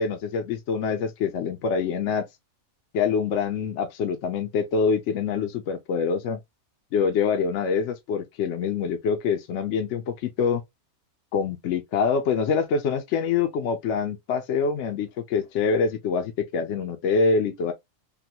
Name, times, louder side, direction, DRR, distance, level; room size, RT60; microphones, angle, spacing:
voice 1, 0.0-2.3 2.9-6.4 6.9-10.6 11.3-17.7, left 5 dB, 65° left, 0.8 m, -25 dB
3.7 x 2.2 x 2.7 m
omnidirectional pair, 1.5 m